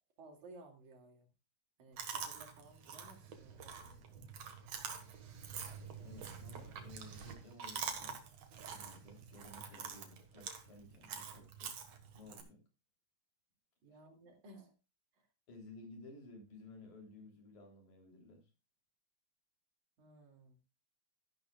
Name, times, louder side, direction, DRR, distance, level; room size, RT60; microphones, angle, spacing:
voice 1, 0.2-1.3 1.8-4.2 13.8-14.7 15.1-15.3 20.0-20.6, right 2 dB, 90° right, 3 dB, 3.9 m, -58 dB
Chewing mastication, 2.0-12.4, right 6 dB, 65° right, 2.7 m, -46 dB
voice 2, 6.0-8.2 8.7-11.7 12.1-12.6 13.9-14.0 15.5-18.5, left 2 dB, 85° left, 2 dB, 4.9 m, -56 dB
12.5 x 11.5 x 2.4 m, 0.29 s
omnidirectional pair, 3.3 m